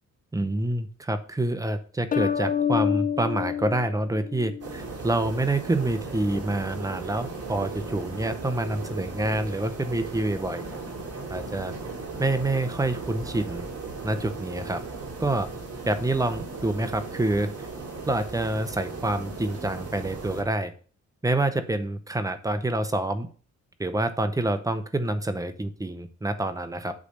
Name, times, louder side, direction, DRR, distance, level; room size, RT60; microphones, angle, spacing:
voice 1, 0.3-10.6 11.3-11.7 12.2-13.7 14.0-14.8 15.2-15.5 15.9-17.5 18.1-20.7 21.2-23.3 23.8-26.9, right 2 dB, 10° right, 9 dB, 0.7 m, -27 dB
sound 1, 2.1-4.7, left 8 dB, 30° left, 0.4 m, -27 dB
sound 2, 4.6-20.4, right 3 dB, 55° right, 2.9 m, -37 dB
8.3 x 3.3 x 6.4 m, 0.41 s
cardioid pair, 135°, 29 cm